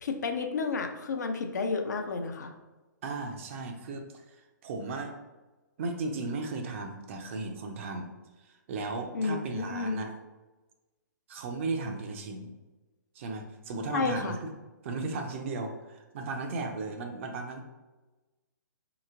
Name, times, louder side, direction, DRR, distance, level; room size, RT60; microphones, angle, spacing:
voice 1, 0.0-2.5 9.1-10.0 13.9-14.4, left 4 dB, 60° left, 5 dB, 0.5 m, -31 dB
voice 2, 3.0-5.1 5.8-8.1 8.4-10.1 11.3-12.5 13.1-14.5 14.8-17.6, right 3 dB, 40° right, 4 dB, 0.5 m, -36 dB
4.2 x 2.9 x 2.5 m, 1.1 s
figure-of-eight pair, 125°, 11 cm